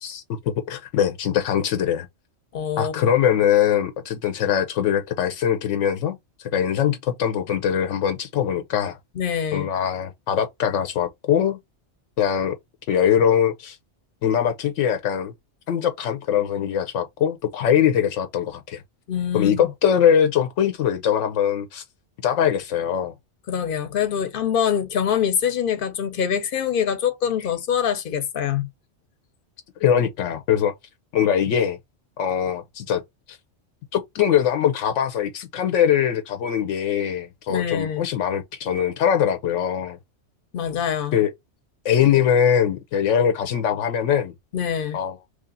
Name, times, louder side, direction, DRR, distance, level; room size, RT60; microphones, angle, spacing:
voice 1, 0.0-2.1 2.8-9.0 9.5-11.6 12.2-12.6 12.9-13.8 14.2-15.3 15.7-18.8 19.3-21.8 22.2-23.1 29.8-30.7 31.1-31.8 32.2-33.0 33.3-33.4 33.9-40.0 41.1-41.3 41.8-44.3 44.9-45.2, left 9 dB, 85° left, 0.9 m, -22 dB
voice 2, 2.5-2.9 9.2-9.7 19.1-19.7 23.5-28.7 37.5-38.0 40.5-41.2 44.5-45.0, left 8 dB, 50° left, 0.8 m, -24 dB
3.1 x 2.4 x 3.8 m
omnidirectional pair, 1.2 m